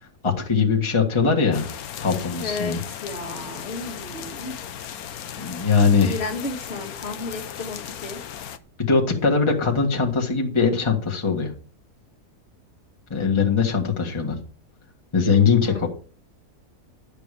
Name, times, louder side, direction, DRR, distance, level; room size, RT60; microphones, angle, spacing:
voice 1, 0.2-1.7 2.0-2.8 5.4-6.2 8.8-11.5 13.1-14.4 15.1-15.9, left 5 dB, 20° left, -1 dB, 1.6 m, -21 dB
sound 1, 1.5-8.6, left 9 dB, 75° left, 1.2 m, -36 dB
voice 2, 2.4-4.7 6.0-8.2 15.6-15.9, left 3 dB, 45° left, -1 dB, 2.0 m, -33 dB
11.5 x 6.8 x 4.9 m, 0.40 s
omnidirectional pair, 1.6 m